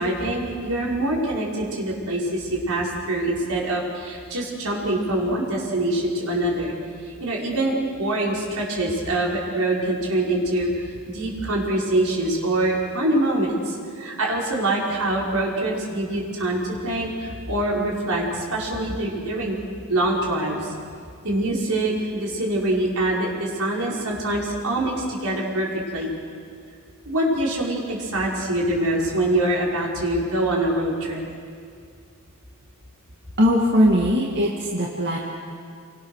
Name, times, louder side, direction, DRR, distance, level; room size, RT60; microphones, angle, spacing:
voice 1, 0.0-6.7 7.0-19.6 19.9-20.7 21.2-26.2 27.1-31.2, right 1 dB, 75° right, -3 dB, 5.9 m, -24 dB
voice 2, 33.4-35.2, equal, 50° right, -2 dB, 2.4 m, -20 dB
29.0 x 23.0 x 6.6 m, 2.2 s
head